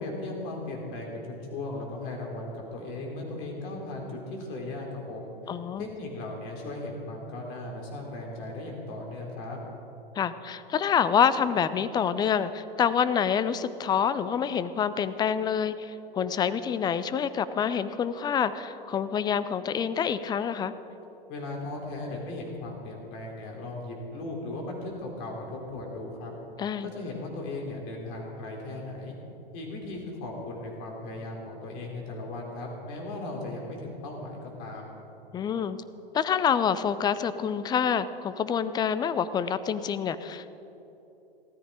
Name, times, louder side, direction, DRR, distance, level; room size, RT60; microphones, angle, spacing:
voice 1, 0.0-9.6 21.3-26.3 26.8-29.2 29.5-35.0, left 2 dB, 45° left, -1 dB, 4.0 m, -37 dB
voice 2, 5.5-5.9 10.2-20.7 26.6-26.9 35.3-35.8 36.1-40.5, left 7 dB, 15° left, 14 dB, 0.4 m, -27 dB
16.0 x 13.5 x 5.0 m, 3.0 s
hypercardioid pair, 110°, 30 cm